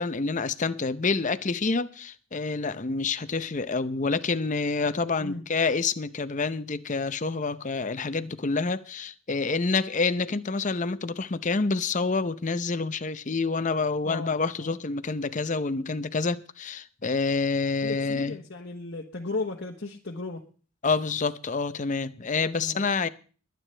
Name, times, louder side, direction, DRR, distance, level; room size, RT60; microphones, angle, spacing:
voice 1, 0.0-18.4 20.8-23.1, left 4 dB, 35° left, 0.7 m, -28 dB
voice 2, 14.0-14.7 17.8-20.4 22.6-22.8, left 3 dB, 55° left, 1.3 m, -35 dB
22.0 x 9.2 x 3.4 m
head